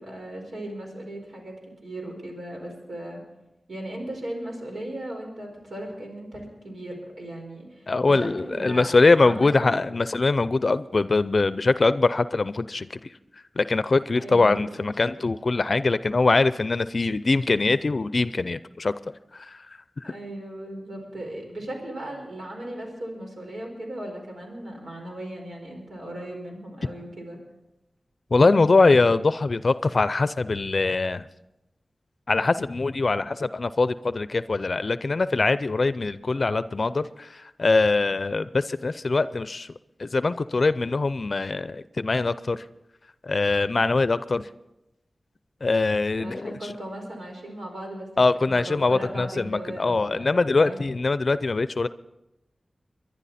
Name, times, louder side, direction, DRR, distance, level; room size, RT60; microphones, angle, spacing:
voice 1, 0.0-1.5 1.8-3.2 3.7-9.8 14.1-14.9 20.0-27.4 46.2-48.1 48.4-50.8, right 1 dB, 85° right, 0 dB, 4.7 m, -37 dB
voice 2, 7.9-13.2 13.6-18.9 19.3-19.7 20.0-20.1 28.3-31.3 32.3-39.7 40.0-42.6 43.2-44.5 45.6-46.6 48.2-51.9, left 3 dB, 60° left, 14 dB, 0.5 m, -22 dB
23.5 x 11.0 x 4.2 m, 0.93 s
cardioid pair, 45°, 0 cm